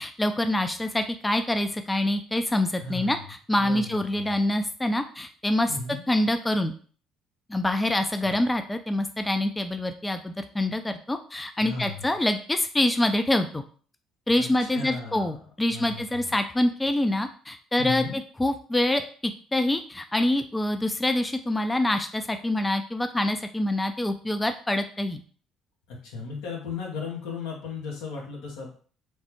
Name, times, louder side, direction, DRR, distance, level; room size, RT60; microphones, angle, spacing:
voice 1, 0.0-3.2 3.5-5.7 6.1-6.7 7.5-13.6 14.3-18.0 18.4-25.2, left 1 dB, 15° left, 8 dB, 0.3 m, -25 dB
voice 2, 2.8-3.3 3.5-4.4 5.7-6.0 8.2-8.4 11.6-12.0 14.4-15.4 15.7-16.4 17.8-18.2 25.9-28.7, left 3 dB, 80° left, -1 dB, 0.8 m, -36 dB
3.1 x 2.0 x 2.9 m, 0.43 s
hypercardioid pair, 60°, 0 cm